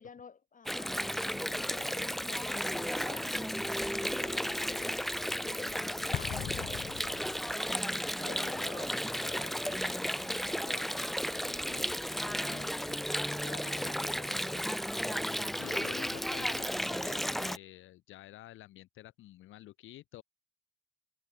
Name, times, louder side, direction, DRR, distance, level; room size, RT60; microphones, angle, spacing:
voice 1, 0.0-3.7 4.0-5.0 5.4-7.2 8.2-13.1 13.4-14.7, left 6 dB, 40° left, 5.3 m, -50 dB
Water, 0.7-17.6, equal, ahead, 0.5 m, -34 dB
Explosion, 6.1-7.8, left 11 dB, 55° left, 0.7 m, -39 dB
voice 2, 15.6-20.2, left 15 dB, 85° left, 1.8 m, -49 dB
cardioid pair, 90°, 20 cm